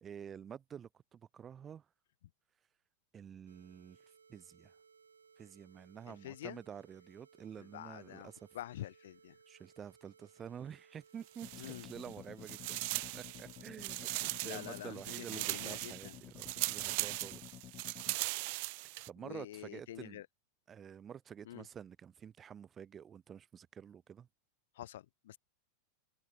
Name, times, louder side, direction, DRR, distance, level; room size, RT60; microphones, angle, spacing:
voice 1, 0.0-1.9 3.1-4.0 4.3-4.8 5.4-8.5 9.5-11.5 11.8-12.8 13.1-17.4 19.1-20.2 20.7-24.3, right 8 dB, 25° right, 2.1 m, -49 dB
sound 1, 3.5-15.2, right 6 dB, 75° right, 4.9 m, -64 dB
voice 2, 6.1-6.6 7.6-9.4 11.6-11.9 14.4-16.2 19.2-20.3 21.4-21.7 24.7-25.4, left 13 dB, 55° left, 0.5 m, -47 dB
sound 2, 11.3-12.1 12.4-19.1, right 29 dB, 45° right, 0.3 m, -39 dB
sound 3, 11.4-18.2, left 12 dB, 30° left, 0.8 m, -53 dB
figure-of-eight pair, 90°, 0 cm